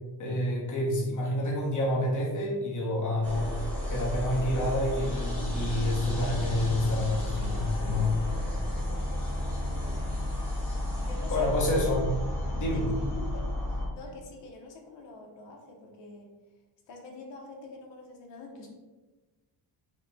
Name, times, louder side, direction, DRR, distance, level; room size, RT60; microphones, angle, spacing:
voice 1, 0.2-8.1 11.3-12.0 12.6-12.8, left 1 dB, 40° left, -3 dB, 1.1 m, -28 dB
sound 1, 3.2-13.9, left 1 dB, 5° left, 0.9 m, -32 dB
voice 2, 8.2-10.0 11.0-12.0 12.4-16.3 16.9-18.7, left 2 dB, 70° left, 1 dB, 1.0 m, -46 dB
4.9 x 2.2 x 4.1 m, 1.2 s
wide cardioid pair, 180°, 46 cm